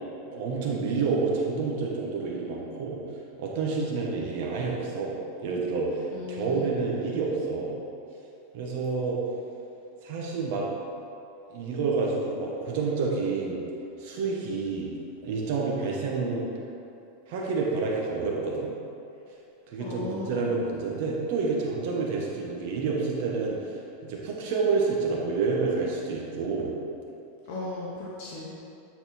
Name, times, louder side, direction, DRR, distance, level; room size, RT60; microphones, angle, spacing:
voice 1, 0.2-3.0 3.4-5.1 5.4-7.8 8.5-9.2 10.0-10.7 11.5-13.6 14.0-14.9 15.2-16.5 17.3-18.7 19.7-26.7, right 4 dB, 55° right, -2 dB, 1.1 m, -29 dB
voice 2, 6.1-6.7 19.8-20.3 27.5-28.5, left 3 dB, 55° left, -5 dB, 1.1 m, -36 dB
9.1 x 4.1 x 4.2 m, 2.8 s
supercardioid pair, 155°, 0 cm